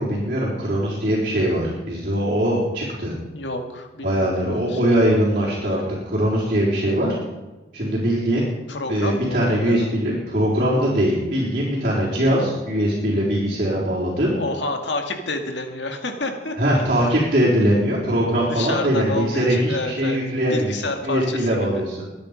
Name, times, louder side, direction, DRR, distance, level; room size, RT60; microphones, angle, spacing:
voice 1, 0.0-3.1 4.0-7.1 7.7-8.4 8.9-14.3 16.6-20.7 21.0-22.1, equal, 45° right, -7 dB, 4.2 m, -21 dB
voice 2, 3.3-4.8 8.7-9.9 14.4-16.5 18.5-20.2 20.5-21.8, left 2 dB, 80° left, 5 dB, 2.0 m, -29 dB
24.0 x 9.6 x 5.2 m, 1.1 s
head